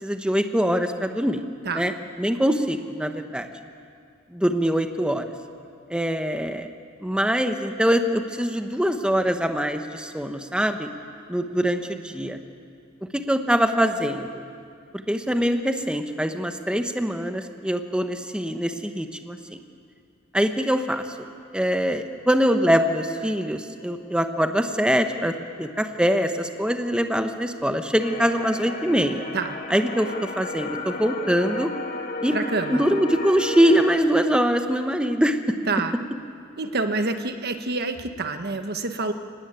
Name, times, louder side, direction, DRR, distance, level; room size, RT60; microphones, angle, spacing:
voice 1, 0.0-1.4 1.7-3.5 4.3-5.3 5.9-6.7 7.0-10.9 11.3-12.4 13.1-14.4 15.1-19.6 20.3-21.0 21.5-29.2 29.7-30.1 30.4-31.7 32.2-35.4, equal, 5° right, 6 dB, 1.1 m, -23 dB
sound 1, 28.0-34.0, left 2 dB, 45° left, 2.1 m, -34 dB
voice 2, 32.3-32.8 35.7-35.9 36.6-39.1, right 3 dB, 50° right, 7 dB, 1.4 m, -27 dB
23.5 x 19.0 x 9.1 m, 2.4 s
head